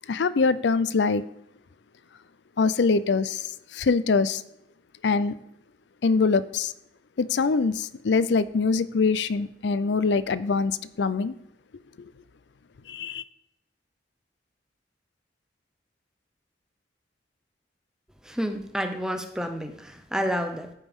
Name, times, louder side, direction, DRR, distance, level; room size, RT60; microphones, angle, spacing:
voice 1, 0.1-1.2 2.6-4.4 5.0-5.4 6.0-6.7 7.2-11.3 12.9-13.2, left 4 dB, 70° left, 0.5 m, -24 dB
voice 2, 18.2-20.7, equal, 5° right, 0.7 m, -30 dB
14.0 x 5.2 x 3.6 m
head